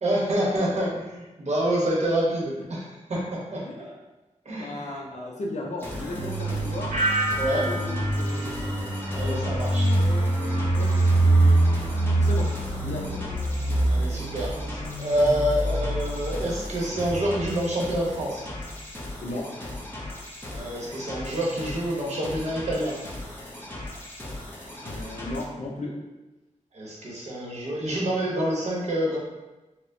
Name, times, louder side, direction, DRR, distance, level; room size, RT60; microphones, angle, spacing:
voice 1, 0.0-3.2 3.5-3.9 4.4-5.0 7.4-7.7 9.1-9.9 13.9-18.4 20.5-23.0 26.7-29.2, right 1 dB, 60° right, -5 dB, 0.9 m, -27 dB
voice 2, 4.6-6.9 7.5-8.7 9.2-10.9 11.2-12.5 12.7-13.2 19.2-19.5 24.8-25.9, left 2 dB, 65° left, -1 dB, 0.6 m, -36 dB
sound 1, 5.8-25.4, left 1 dB, 15° left, 0.6 m, -38 dB
sound 2, 5.9-18.2 18.5-18.7, right 2 dB, 30° right, 0.8 m, -25 dB
sound 3, 6.9-9.7 10.1-10.6, right 2 dB, 85° right, 1.3 m, -31 dB
4.2 x 2.1 x 2.7 m, 1.1 s
wide cardioid pair, 135°, 13 cm